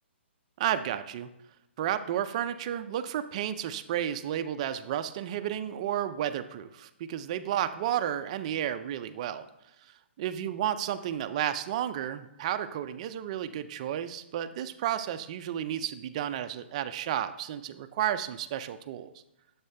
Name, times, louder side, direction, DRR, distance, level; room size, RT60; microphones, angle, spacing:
voice 1, 0.6-1.3 1.8-9.5 9.8-19.1, right 10 dB, 35° right, 11 dB, 0.4 m, -32 dB
7.2 x 5.4 x 3.3 m, 0.90 s
hypercardioid pair, 160°, 6 cm